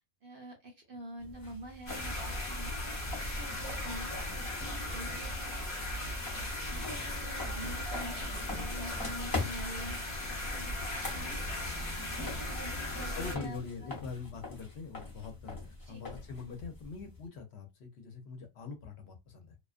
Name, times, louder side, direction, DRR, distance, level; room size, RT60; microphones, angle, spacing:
voice 1, 0.2-2.7 3.2-5.7 6.6-8.2 8.5-10.1 10.4-11.3 12.1-14.0 15.9-16.0, right 1 dB, 55° right, 0.7 m, -47 dB
sound 1, 1.2-17.3, left 2 dB, 20° left, 0.7 m, -44 dB
sound 2, 1.9-13.4, left 1 dB, 35° left, 1.0 m, -37 dB
voice 2, 13.1-19.6, left 5 dB, 65° left, 0.8 m, -43 dB
2.4 x 2.3 x 2.4 m
omnidirectional pair, 1.3 m